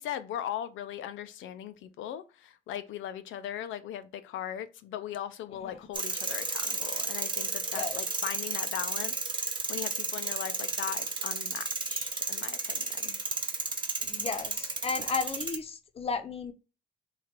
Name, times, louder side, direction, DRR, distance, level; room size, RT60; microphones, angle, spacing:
voice 1, 0.0-9.1 9.4-13.2, left 10 dB, 85° left, 0.4 m, -39 dB
sound 1, 5.9-15.6, right 3 dB, 25° right, 0.6 m, -33 dB
voice 2, 14.0-16.5, left 5 dB, 30° left, 0.6 m, -34 dB
3.1 x 2.4 x 4.3 m
cardioid pair, 115°, 19 cm